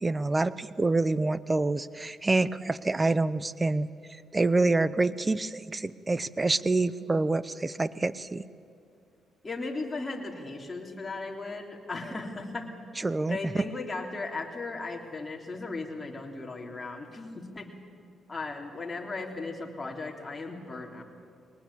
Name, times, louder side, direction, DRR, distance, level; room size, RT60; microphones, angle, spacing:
voice 1, 0.0-3.9 4.3-8.4 13.0-13.6, right 2 dB, 20° right, 17 dB, 0.8 m, -27 dB
voice 2, 9.4-12.7 13.3-17.7 18.3-21.0, left 3 dB, 25° left, 1 dB, 3.5 m, -37 dB
22.0 x 19.5 x 8.7 m, 2.3 s
cardioid pair, 90°, 0 cm